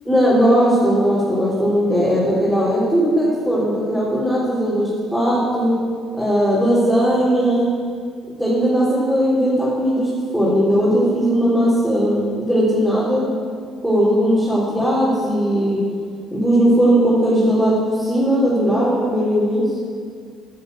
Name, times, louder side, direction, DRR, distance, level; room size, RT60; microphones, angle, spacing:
voice 1, 0.1-5.8 6.2-7.7 8.4-13.3 13.8-15.8 16.3-19.7, equal, ahead, -9 dB, 3.7 m, -18 dB
10.5 x 7.9 x 7.8 m, 2.1 s
cardioid pair, 90°, 0 cm